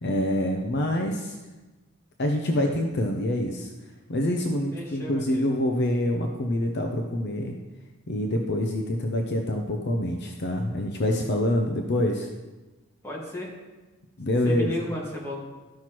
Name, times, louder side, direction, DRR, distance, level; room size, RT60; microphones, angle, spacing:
voice 1, 0.0-1.4 2.2-3.7 4.1-7.6 8.1-12.3 14.2-14.7, left 1 dB, 50° left, 2 dB, 0.6 m, -26 dB
voice 2, 4.7-5.5 13.0-13.6 14.4-15.4, left 1 dB, 10° left, -5 dB, 1.7 m, -34 dB
13.0 x 5.9 x 3.0 m, 1.2 s
head